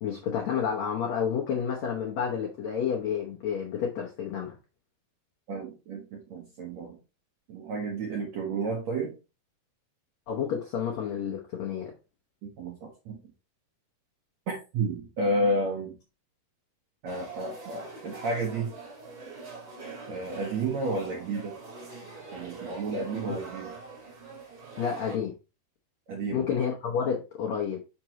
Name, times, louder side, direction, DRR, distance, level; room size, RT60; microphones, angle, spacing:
voice 1, 0.0-4.5 10.3-11.9 23.3-23.4 24.8-25.3 26.3-27.8, left 7 dB, 75° left, 0 dB, 1.6 m, -30 dB
voice 2, 5.5-7.0 7.5-9.1 12.4-13.2 14.5-15.9 17.0-18.8 20.1-21.5 22.3-23.7 26.1-26.5, right 2 dB, 70° right, -1 dB, 1.7 m, -31 dB
sound 1, 17.0-25.2, right 3 dB, 35° right, 2.2 m, -43 dB
6.0 x 6.0 x 2.9 m, 0.30 s
omnidirectional pair, 4.5 m